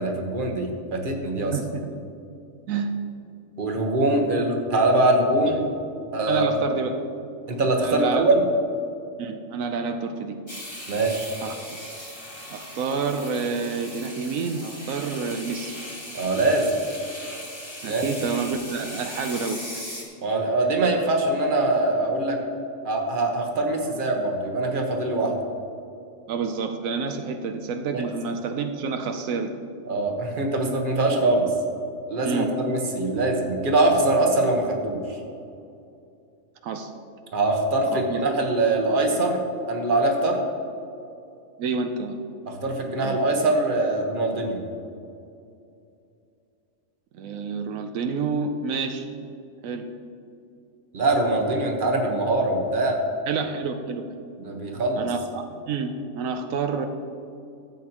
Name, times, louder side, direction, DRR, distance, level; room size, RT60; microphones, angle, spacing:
voice 1, 0.0-1.5 3.6-5.6 6.1-6.5 7.5-8.4 10.9-11.3 16.1-16.7 17.8-18.0 20.2-22.4 22.8-25.3 27.9-28.0 29.9-31.5 32.1-35.2 37.3-40.4 42.5-44.6 50.9-53.0 54.4-55.1, right 2 dB, 40° right, 2 dB, 1.3 m, -23 dB
voice 2, 1.5-1.9 2.7-2.9 5.5-5.6 6.3-7.0 7.8-8.2 9.2-10.4 11.4-11.8 12.5-15.8 17.8-19.6 26.3-29.5 32.2-32.5 36.6-36.9 37.9-38.2 41.6-42.2 43.0-43.2 47.1-49.1 49.6-49.9 53.3-54.1 55.0-56.9, right 5 dB, 85° right, 6 dB, 1.0 m, -28 dB
sound 1, 10.5-20.0, left 1 dB, 20° left, 1.8 m, -38 dB
14.5 x 8.3 x 2.9 m, 2.6 s
omnidirectional pair, 1.4 m